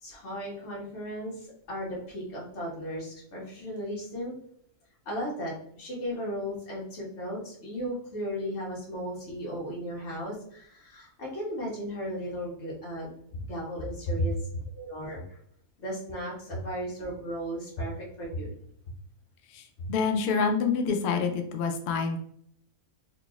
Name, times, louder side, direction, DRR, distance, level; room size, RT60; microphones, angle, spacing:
voice 1, 0.0-4.3 5.0-13.1 13.5-14.5 14.7-15.4 15.8-18.5, equal, 50° left, -4 dB, 1.6 m, -36 dB
voice 2, 19.5-22.2, left 5 dB, 75° left, 4 dB, 0.6 m, -27 dB
4.0 x 3.4 x 2.2 m, 0.67 s
omnidirectional pair, 1.6 m